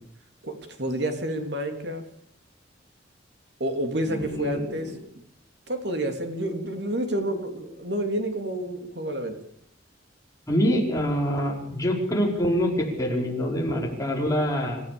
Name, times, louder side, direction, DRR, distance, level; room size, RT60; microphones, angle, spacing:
voice 1, 0.4-2.0 3.6-4.9 5.7-9.3, right 1 dB, 65° right, 5 dB, 3.3 m, -29 dB
voice 2, 4.1-4.9 10.5-14.8, equal, 20° left, -1 dB, 5.3 m, -25 dB
26.0 x 15.0 x 7.1 m, 0.66 s
head